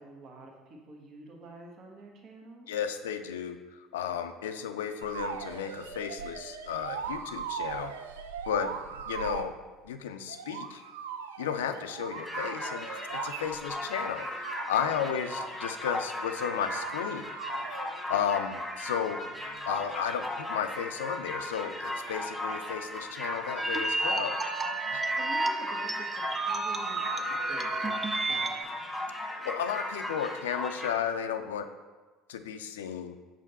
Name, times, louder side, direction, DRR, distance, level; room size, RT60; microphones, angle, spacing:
voice 1, 0.0-2.7 8.6-8.7 15.0-15.6 19.3-19.8 25.1-28.9, right 2 dB, 50° right, 0 dB, 1.1 m, -49 dB
voice 2, 2.7-7.9 8.5-8.7 9.1-9.5 9.8-10.8 11.4-17.3 18.1-19.2 19.6-24.4 24.9-25.0 29.4-31.7 32.3-33.2, left 8 dB, 80° left, 9 dB, 0.3 m, -33 dB
sound 1, 5.0-9.5 10.3-13.8 14.2-15.5 16.3-17.0 17.3-17.9 19.6-19.7, right 7 dB, 80° right, 0.3 m, -40 dB
sound 2, 12.1-30.9, left 1 dB, 5° left, 1.3 m, -37 dB
sound 3, 23.6-28.6, right 2 dB, 20° right, 0.6 m, -31 dB
5.5 x 5.0 x 4.1 m, 1.3 s
hypercardioid pair, 65°, 0 cm